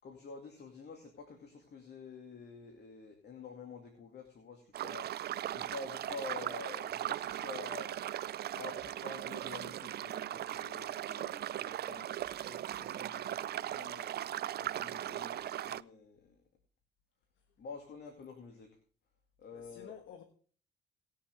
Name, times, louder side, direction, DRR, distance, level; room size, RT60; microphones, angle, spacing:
voice 1, 0.0-8.0 8.6-14.2 14.6-16.4 17.6-18.8 19.4-19.9, left 4 dB, 55° left, 2.3 m, -49 dB
sound 1, 4.7-15.8, right 12 dB, 55° right, 0.4 m, -38 dB
voice 2, 13.2-13.5 19.5-20.2, left 8 dB, 80° left, 1.3 m, -52 dB
19.0 x 7.1 x 3.5 m
cardioid pair, 90°, 20 cm